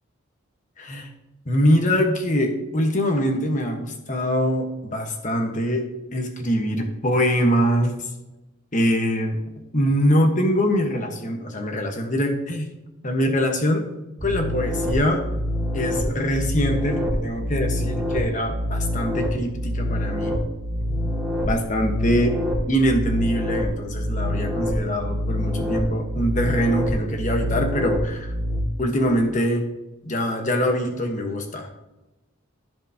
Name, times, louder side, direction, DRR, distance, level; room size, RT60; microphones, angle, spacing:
voice 1, 0.8-1.1 1.4-5.8 6.1-7.9 8.7-9.4 9.7-12.7 13.0-13.8 14.2-15.2 15.7-20.4 20.9-21.1 21.4-22.3 22.7-28.3 28.8-29.6 30.0-31.7, equal, 35° left, 4 dB, 1.3 m, -23 dB
sound 1, 14.2-28.6, equal, 5° right, 2.5 m, -26 dB
14.5 x 5.1 x 2.9 m, 1.0 s
head